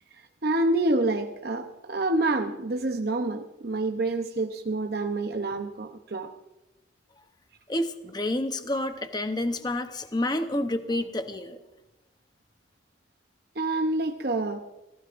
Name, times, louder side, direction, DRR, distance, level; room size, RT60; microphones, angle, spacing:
voice 1, 0.4-6.3 13.6-14.8, right 2 dB, 55° right, 5 dB, 0.7 m, -27 dB
voice 2, 7.7-11.6, left 1 dB, 20° left, 8 dB, 0.8 m, -29 dB
27.5 x 16.0 x 2.6 m, 1.0 s
head